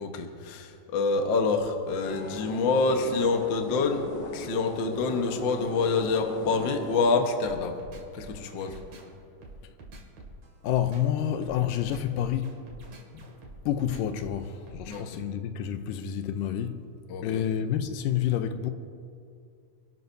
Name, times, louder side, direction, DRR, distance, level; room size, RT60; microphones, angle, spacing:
voice 1, 0.0-4.0 4.3-7.8 8.1-8.8 14.9-15.2 17.1-17.4, left 4 dB, 65° left, 1.1 m, -27 dB
sound 1, 2.0-7.1, left 2 dB, 50° left, 2.1 m, -39 dB
sound 2, 7.4-15.2, right 2 dB, 55° right, 3.3 m, -47 dB
voice 2, 10.6-12.7 13.1-13.3 13.7-16.9 17.2-18.7, left 10 dB, 85° left, 2.3 m, -29 dB
28.0 x 12.0 x 2.7 m
omnidirectional pair, 3.9 m